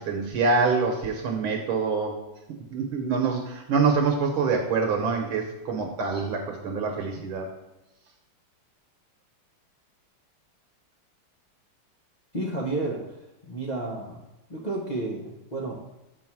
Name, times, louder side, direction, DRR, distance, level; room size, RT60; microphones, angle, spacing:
voice 1, 0.0-2.2 2.7-7.5, right 4 dB, 75° right, 2 dB, 1.8 m, -25 dB
voice 2, 12.3-13.2 13.5-14.2 14.5-15.9, right 2 dB, 45° left, -4 dB, 0.5 m, -31 dB
6.1 x 4.3 x 6.0 m, 0.94 s
omnidirectional pair, 2.4 m